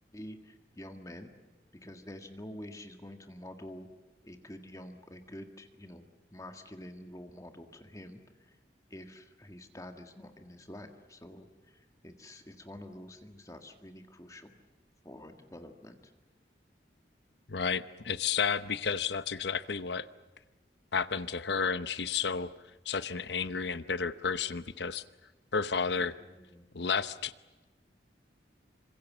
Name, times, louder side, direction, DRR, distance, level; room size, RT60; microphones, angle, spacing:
voice 1, 0.1-1.3 1.7-3.9 4.2-8.6 8.9-14.6 15.0-16.1 26.2-26.7, left 1 dB, 20° left, 6 dB, 1.8 m, -48 dB
voice 2, 17.5-20.1 20.9-22.5 22.8-25.0 25.5-26.1 26.7-27.3, left 5 dB, 70° left, 14 dB, 0.9 m, -31 dB
27.0 x 25.5 x 7.4 m, 1.2 s
head